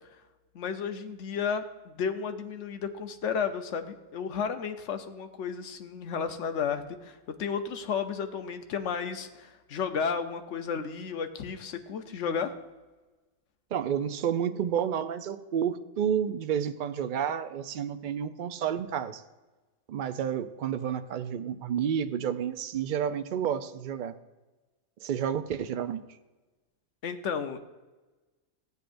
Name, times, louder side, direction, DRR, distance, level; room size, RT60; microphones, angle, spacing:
voice 1, 0.5-12.5 27.0-27.6, left 6 dB, 60° left, 7 dB, 1.1 m, -33 dB
voice 2, 13.7-19.2 19.9-24.1 25.0-26.0, right 8 dB, 75° right, 10 dB, 0.4 m, -30 dB
15.5 x 8.1 x 2.6 m, 1.2 s
omnidirectional pair, 1.4 m